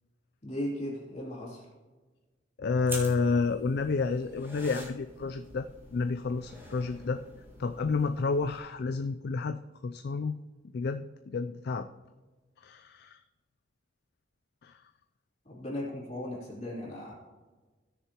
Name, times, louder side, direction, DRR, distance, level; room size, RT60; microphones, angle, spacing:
voice 1, 0.4-1.6 15.5-17.1, left 1 dB, 35° left, -4 dB, 3.0 m, -37 dB
voice 2, 2.6-7.2 7.6-9.6 9.8-10.4 10.7-11.9 12.6-13.2 14.6-14.7, left 4 dB, 60° left, 8 dB, 0.4 m, -30 dB
sound 1, 2.8-8.6, right 1 dB, 10° right, 1.8 m, -46 dB
17.0 x 6.7 x 3.0 m, 1.3 s
head